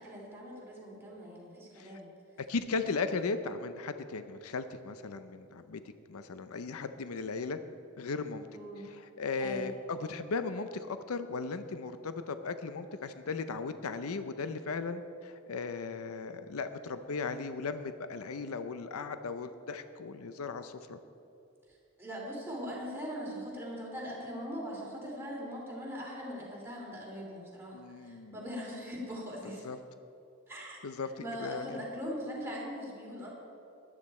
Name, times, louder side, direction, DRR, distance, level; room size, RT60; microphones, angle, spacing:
voice 1, 0.0-2.1 8.5-8.9 9.4-9.7 21.7-29.6 30.5-30.8 31.2-33.3, equal, 10° right, -5 dB, 3.0 m, -41 dB
voice 2, 2.5-5.8 6.1-7.6 8.0-8.5 8.8-21.0 27.7-28.4 29.6-29.8 30.8-31.1 31.4-31.6, left 4 dB, 75° left, 10 dB, 0.6 m, -37 dB
13.0 x 11.5 x 4.3 m, 2.7 s
head